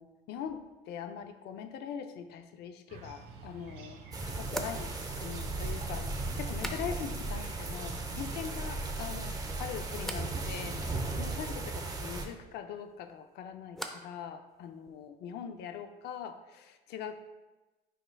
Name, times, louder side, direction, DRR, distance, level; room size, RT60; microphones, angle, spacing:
voice 1, 0.0-17.2, left 8 dB, 80° left, 8 dB, 0.6 m, -42 dB
sound 1, 2.9-9.0, right 4 dB, 75° right, 1.5 m, -49 dB
sound 2, 4.1-12.3, right 2 dB, 20° right, 0.9 m, -36 dB
sound 3, 4.5-7.3 7.6-8.2 8.5-9.1 10.0-10.3 12.8-14.2 14.5-15.1, equal, ahead, 0.6 m, -45 dB
9.1 x 5.3 x 2.3 m, 1.1 s
cardioid pair, 110°, 17 cm